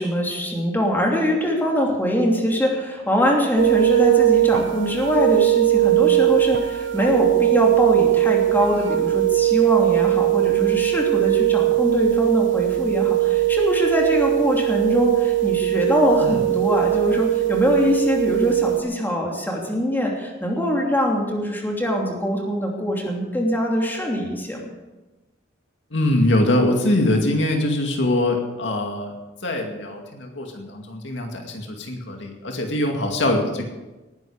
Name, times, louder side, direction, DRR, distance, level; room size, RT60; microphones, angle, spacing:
voice 1, 0.0-24.7, equal, 10° left, -1 dB, 2.9 m, -23 dB
sound 1, 3.6-18.8, right 15 dB, 80° right, 0.8 m, -20 dB
voice 2, 25.9-29.1 29.4-33.7, left 1 dB, 75° left, 2 dB, 2.2 m, -23 dB
19.0 x 10.5 x 5.0 m, 1.1 s
head